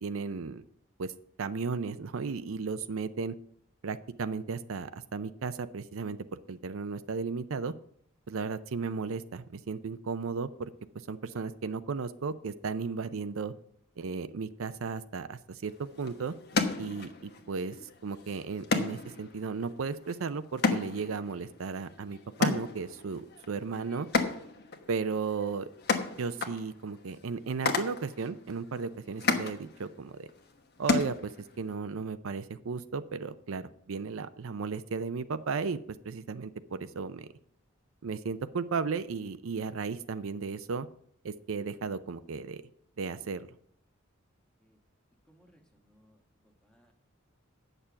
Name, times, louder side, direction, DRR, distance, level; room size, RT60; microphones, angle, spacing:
voice 1, 0.0-0.6 1.0-1.1 1.4-3.3 3.8-6.2 6.5-7.7 8.3-10.7 11.1-13.5 14.0-16.3 16.8-17.8 18.0-24.1 24.9-25.7 26.2-30.3 30.8-31.3 31.6-35.8 36.0-37.3 38.0-40.9 41.2-42.6 43.0-43.5, right 5 dB, 80° right, 12 dB, 0.5 m, -35 dB
sound 1, 15.6-31.7, left 4 dB, 50° left, 1.1 m, -34 dB
voice 2, 45.3-46.2 46.6-46.9, equal, 5° left, 1 dB, 1.4 m, -64 dB
8.9 x 6.7 x 7.0 m, 0.65 s
head